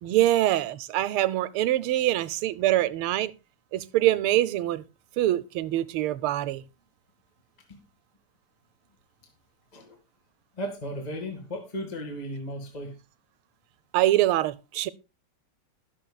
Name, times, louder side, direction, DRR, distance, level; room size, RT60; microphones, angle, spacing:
voice 1, 0.0-3.3 3.7-4.8 5.2-6.6 13.9-14.9, right 14 dB, 80° right, 1.5 m, -24 dB
voice 2, 10.6-12.9, equal, 20° left, 1.9 m, -35 dB
21.0 x 7.1 x 2.3 m
omnidirectional pair, 2.4 m